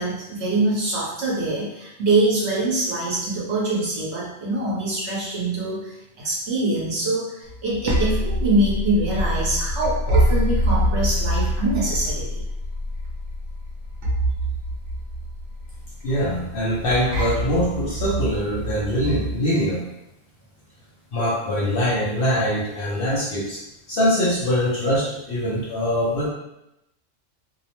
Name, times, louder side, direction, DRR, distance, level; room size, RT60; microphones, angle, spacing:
voice 1, 0.0-12.4, right 2 dB, 60° right, -5 dB, 1.1 m, -24 dB
sound 1, 7.5-19.4, equal, 85° right, 1.0 m, -25 dB
voice 2, 16.0-19.8 21.1-23.6 23.9-26.3, equal, 60° left, -6 dB, 0.6 m, -23 dB
2.8 x 2.0 x 2.9 m, 0.87 s
omnidirectional pair, 1.3 m